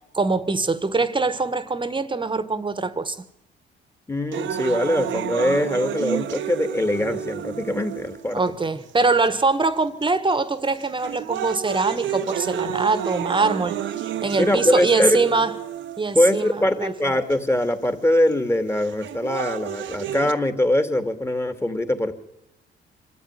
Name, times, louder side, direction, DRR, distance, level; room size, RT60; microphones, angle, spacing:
voice 1, 0.1-3.2 8.3-13.8 14.2-15.5 16.0-17.2, right 3 dB, 25° right, 1.6 m, -23 dB
voice 2, 4.1-8.4 14.4-15.2 16.1-22.1, left 1 dB, 15° left, 2.5 m, -22 dB
sound 1, 4.3-8.3 9.1-9.2 10.0-10.3 10.8-16.3 17.3-17.4 18.8-20.3, right 10 dB, 75° right, 1.2 m, -30 dB
25.5 x 13.5 x 9.8 m
cardioid pair, 90°, 20 cm